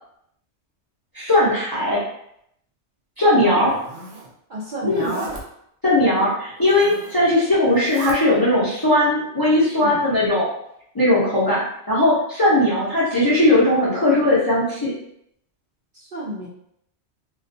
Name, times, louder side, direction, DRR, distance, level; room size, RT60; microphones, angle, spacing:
voice 1, 1.1-2.0 3.2-3.7 4.8-5.1 5.8-10.5 10.9-14.9, left 1 dB, 25° left, -9 dB, 0.5 m, -18 dB
voice 2, 3.3-3.7 4.5-5.3 9.7-10.0 15.9-16.5, right 1 dB, 60° right, -6 dB, 0.5 m, -31 dB
Zipper (clothing), 3.5-4.3 4.9-5.4 6.5-7.2 7.6-8.2, right 2 dB, 90° right, 0.9 m, -34 dB
2.3 x 2.2 x 2.6 m, 0.73 s
omnidirectional pair, 1.2 m